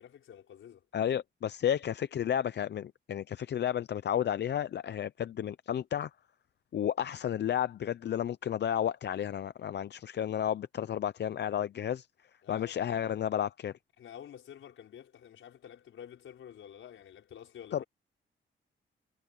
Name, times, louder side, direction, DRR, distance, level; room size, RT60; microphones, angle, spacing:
voice 1, 0.0-0.8 12.4-12.8 14.0-17.8, left 9 dB, 80° left, 5.6 m, -49 dB
voice 2, 0.9-6.1 6.7-12.1 12.5-13.7 17.7-17.8, left 10 dB, 60° left, 0.6 m, -32 dB
cardioid pair, 85°, 20 cm